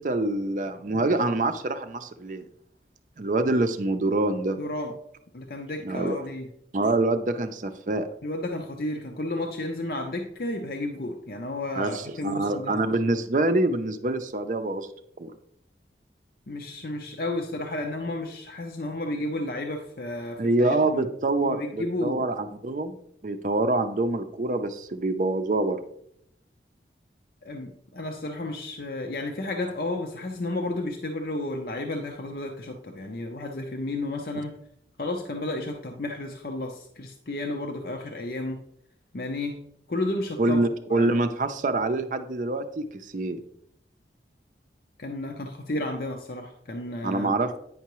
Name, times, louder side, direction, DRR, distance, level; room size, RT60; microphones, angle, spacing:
voice 1, 0.0-2.4 3.2-4.6 5.8-6.2 6.7-8.1 11.7-14.9 15.2-15.3 20.4-23.0 23.2-25.8 40.4-43.4 47.0-47.5, right 2 dB, 45° right, 8 dB, 0.5 m, -26 dB
voice 2, 4.6-4.9 5.3-6.5 8.2-12.8 16.5-21.1 21.4-22.2 27.4-34.5 35.0-38.6 39.1-39.6 39.9-40.6 40.9-41.2 45.0-47.3, left 2 dB, 55° left, 3 dB, 0.6 m, -32 dB
9.3 x 5.6 x 3.0 m, 0.72 s
head